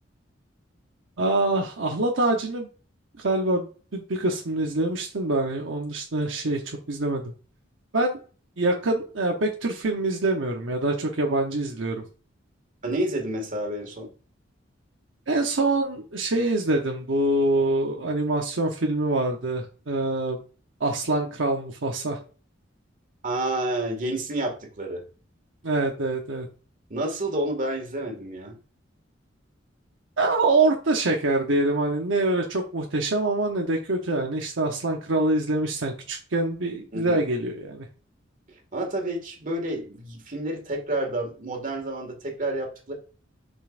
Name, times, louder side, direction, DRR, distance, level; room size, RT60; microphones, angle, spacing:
voice 1, 1.2-2.7 3.2-7.3 7.9-8.2 8.6-12.0 15.3-20.4 20.8-22.2 25.6-26.5 30.2-37.9, right 2 dB, 80° right, 1 dB, 1.0 m, -25 dB
voice 2, 12.8-14.1 23.2-25.0 26.9-28.6 36.9-37.2 38.5-42.9, right 1 dB, 45° right, 2 dB, 2.0 m, -29 dB
7.0 x 5.5 x 2.5 m, 0.37 s
head